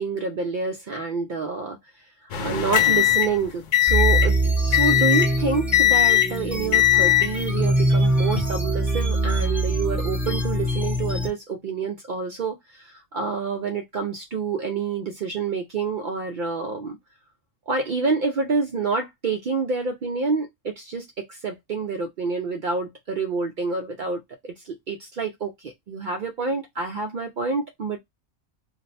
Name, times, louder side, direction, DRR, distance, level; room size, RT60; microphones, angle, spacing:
voice 1, 0.0-1.8 2.4-17.0 17.7-28.0, right 4 dB, 65° right, 0.4 m, -28 dB
sound 1, 2.3-4.4 4.7-5.4 5.7-6.4 6.7-7.4 8.1-8.4, left 13 dB, 65° left, 0.5 m, -19 dB
sound 2, 3.9-11.3, right 1 dB, ahead, 0.6 m, -23 dB
2.5 x 2.1 x 3.9 m
omnidirectional pair, 1.3 m